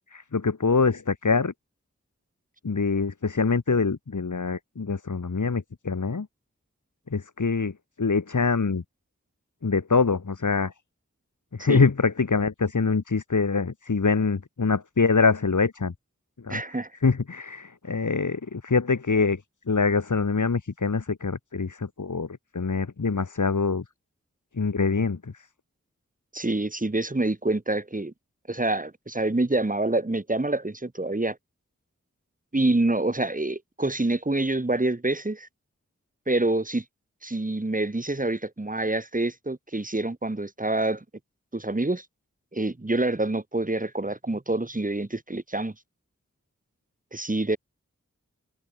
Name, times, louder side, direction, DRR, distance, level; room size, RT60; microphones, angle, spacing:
voice 1, 0.1-1.5 2.6-6.3 7.1-7.7 8.0-8.8 9.6-10.7 11.6-15.9 16.5-16.6 17.0-19.4 19.7-22.3 22.5-23.8 24.6-25.2, left 4 dB, 90° left, 4.2 m, -24 dB
voice 2, 16.5-16.9 26.3-28.1 28.5-31.4 32.5-35.5 36.3-36.8 37.2-41.0 41.5-42.0 42.5-45.7 47.1-47.6, right 2 dB, 25° right, 2.4 m, -26 dB
open air
wide cardioid pair, 65°, 30 cm